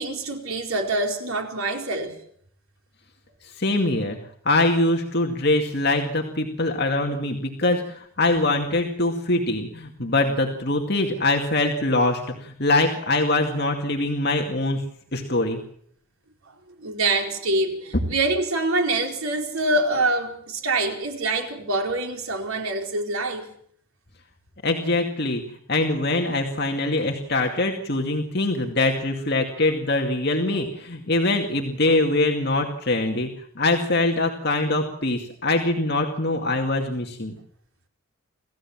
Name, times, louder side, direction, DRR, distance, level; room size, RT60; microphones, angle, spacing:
voice 1, 0.0-2.1 16.8-23.5 30.5-30.7 31.9-32.0, right 2 dB, 85° right, 4.4 m, -25 dB
voice 2, 3.6-4.2 4.5-14.8 15.1-15.6 24.6-25.4 25.7-33.3 33.6-37.3, left 2 dB, 50° left, 2.3 m, -23 dB
27.5 x 15.5 x 7.4 m
head